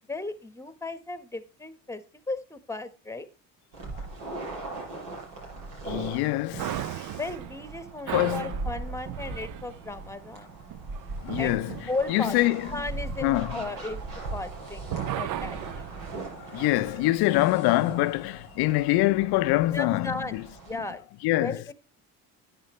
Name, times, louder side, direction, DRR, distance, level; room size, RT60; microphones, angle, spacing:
voice 1, 0.1-2.0 2.3-3.3 7.1-10.5 11.4-11.6 11.9-12.4 12.7-14.0 14.3-15.9 19.7-20.4 20.7-21.0 21.4-21.7, left 2 dB, 5° left, 1.2 m, -35 dB
sound 1, 3.7-20.8, right 3 dB, 75° right, 6.5 m, -39 dB
voice 2, 5.8-7.1 8.1-8.5 11.2-11.8 12.1-12.7 13.2-13.6 16.3-20.4 21.2-21.6, left 18 dB, 75° left, 0.7 m, -25 dB
sound 2, 6.5-14.5 14.9-17.2, right 13 dB, 55° right, 0.6 m, -38 dB
9.9 x 9.8 x 3.1 m
supercardioid pair, 90°, 38 cm